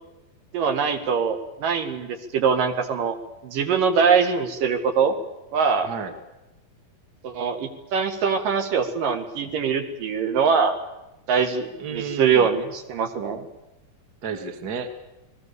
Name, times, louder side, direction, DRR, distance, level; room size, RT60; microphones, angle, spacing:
voice 1, 0.5-3.2 3.4-5.2 5.5-5.9 7.2-10.8 11.3-13.5, right 6 dB, 65° right, 7 dB, 3.3 m, -23 dB
voice 2, 5.8-6.1 11.8-12.5 14.2-14.9, right 6 dB, 30° right, 7 dB, 2.1 m, -32 dB
29.5 x 20.5 x 6.9 m, 0.97 s
omnidirectional pair, 4.4 m